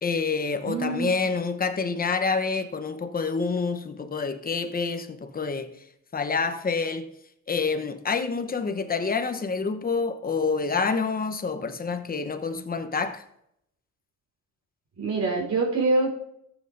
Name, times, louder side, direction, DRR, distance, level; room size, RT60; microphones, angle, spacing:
voice 1, 0.0-5.8 6.1-7.1 7.5-13.2, left 4 dB, 30° left, 1.0 m, -27 dB
voice 2, 0.6-1.2 15.0-16.1, right 3 dB, 60° right, 4.0 m, -25 dB
14.5 x 8.1 x 2.7 m
cardioid pair, 90°, 30 cm